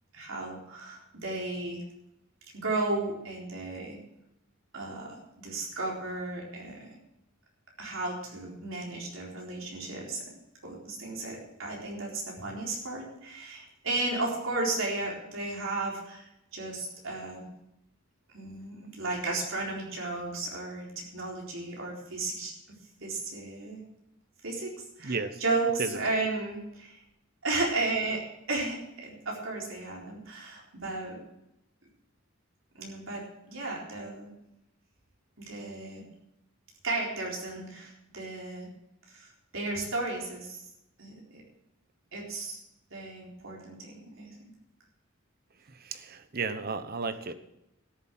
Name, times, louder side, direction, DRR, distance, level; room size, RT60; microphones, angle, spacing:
voice 1, 0.1-1.8 2.5-4.0 4.7-6.9 7.8-10.2 10.6-17.5 18.3-22.5 23.0-23.8 24.4-24.7 25.0-27.0 27.4-28.2 28.5-31.2 32.7-34.3 35.4-36.1 36.8-38.7 39.1-40.6 41.0-41.4 42.1-42.6 42.9-44.3, right 2 dB, 75° right, -2 dB, 4.1 m, -34 dB
voice 2, 25.0-25.4 25.8-26.0 45.8-47.3, right 4 dB, 50° right, 11 dB, 0.9 m, -33 dB
13.0 x 7.4 x 7.6 m, 0.85 s
head